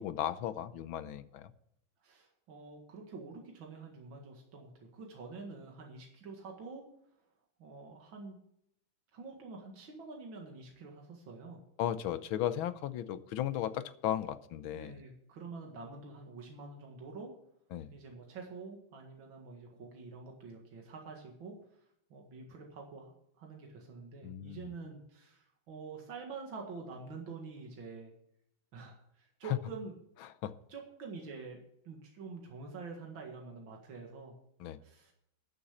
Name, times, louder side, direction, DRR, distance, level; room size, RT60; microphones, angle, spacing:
voice 1, 0.0-1.5 11.8-15.0 17.7-17.9 24.2-24.7 30.4-30.6 34.6-34.8, left 11 dB, 90° left, 1.6 m, -36 dB
voice 2, 2.0-6.8 7.6-8.4 9.1-11.6 14.7-17.3 17.9-21.8 22.1-28.1 28.7-29.9 30.7-31.6 31.8-34.3 34.8-35.1, right 4 dB, 75° right, 2.6 m, -47 dB
13.0 x 7.1 x 6.4 m
omnidirectional pair, 2.2 m